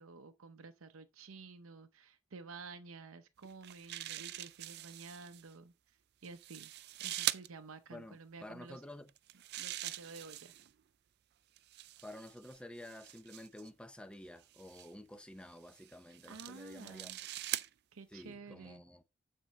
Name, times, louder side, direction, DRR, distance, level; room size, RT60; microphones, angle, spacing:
voice 1, 0.0-6.7 7.0-8.8 9.6-10.5 16.3-17.2 17.9-18.8, right 4 dB, 80° right, 0.7 m, -51 dB
sound 1, 3.4-5.4 6.2-7.5 9.1-10.7 11.6-13.7 14.5-14.9 15.7-17.7, right 14 dB, 50° right, 0.4 m, -42 dB
voice 2, 7.9-9.1 12.0-17.2 18.1-19.0, left 1 dB, 5° left, 0.7 m, -51 dB
9.3 x 4.4 x 6.5 m
head